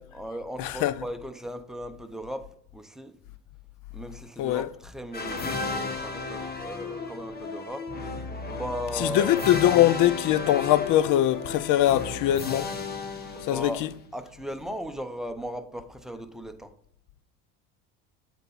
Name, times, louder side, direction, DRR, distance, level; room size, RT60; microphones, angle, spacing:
voice 1, 0.0-3.2 3.9-8.1 8.4-9.5 13.4-13.9 14.1-16.7, equal, ahead, 0.7 m, -37 dB
voice 2, 0.6-0.9 4.4-4.7 9.0-12.7 13.4-13.9, left 13 dB, 60° left, 0.5 m, -22 dB
sound 1, 5.1-14.0, left 3 dB, 25° left, 1.2 m, -34 dB
8.0 x 4.1 x 4.1 m
supercardioid pair, 90°, 36 cm